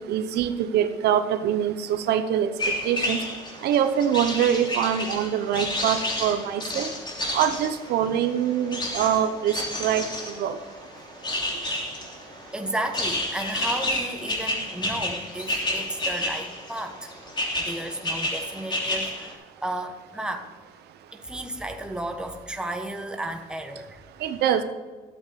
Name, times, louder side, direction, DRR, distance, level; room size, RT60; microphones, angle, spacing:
voice 1, 0.0-2.5 2.8-3.2 3.6-6.9 7.3-10.0 10.4-10.6 24.2-24.6, right 9 dB, 75° right, 9 dB, 0.9 m, -24 dB
sound 1, 2.6-19.3, left 1 dB, 25° left, 3.1 m, -31 dB
voice 2, 12.5-17.1 17.6-20.5 21.1-24.0, right 1 dB, 5° right, 4 dB, 1.2 m, -33 dB
13.0 x 8.1 x 4.3 m, 1.4 s
cardioid pair, 110°, 17 cm